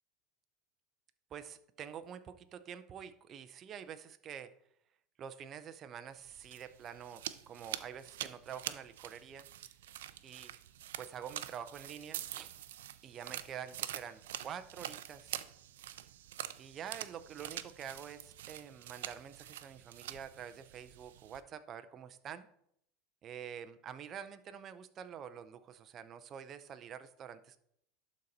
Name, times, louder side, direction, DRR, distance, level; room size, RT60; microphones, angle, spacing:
voice 1, 1.3-4.5 5.2-9.5 10.2-10.5 11.0-12.5 13.0-15.4 16.6-22.5 23.2-27.6, right 8 dB, 35° right, 10 dB, 0.6 m, -47 dB
sound 1, 6.2-21.4, right 12 dB, 90° right, 0.5 m, -46 dB
11.5 x 4.2 x 4.1 m, 0.70 s
supercardioid pair, 125°, 0 cm